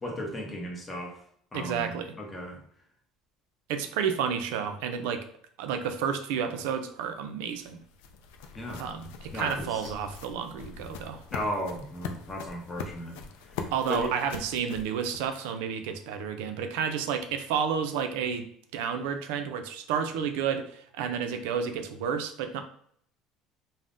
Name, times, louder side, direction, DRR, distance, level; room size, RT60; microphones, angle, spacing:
voice 1, 0.0-1.2 1.5-2.6 8.5-8.9 9.3-9.7 11.3-13.2 13.5-13.6 13.9-14.1, equal, 15° left, 0 dB, 0.8 m, -35 dB
voice 2, 1.5-2.1 3.7-5.3 5.6-7.8 8.8-11.2 13.7-18.5 18.7-22.6, right 7 dB, 85° right, 7 dB, 0.3 m, -31 dB
sound 1, 7.2-15.7, left 5 dB, 85° left, 0.3 m, -42 dB
3.4 x 2.0 x 2.6 m, 0.64 s
cardioid pair, 125°, 0 cm